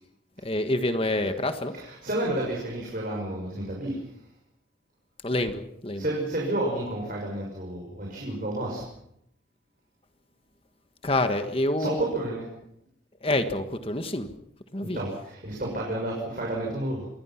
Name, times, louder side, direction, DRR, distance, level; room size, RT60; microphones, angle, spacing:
voice 1, 0.4-1.7 5.2-6.0 11.0-12.0 13.2-14.3 14.7-15.0, left 1 dB, 30° left, 8 dB, 1.5 m, -27 dB
voice 2, 1.7-4.1 5.9-8.9 11.8-12.5 14.8-17.1, right 1 dB, 45° right, -2 dB, 6.4 m, -31 dB
27.0 x 21.0 x 5.9 m, 0.76 s
head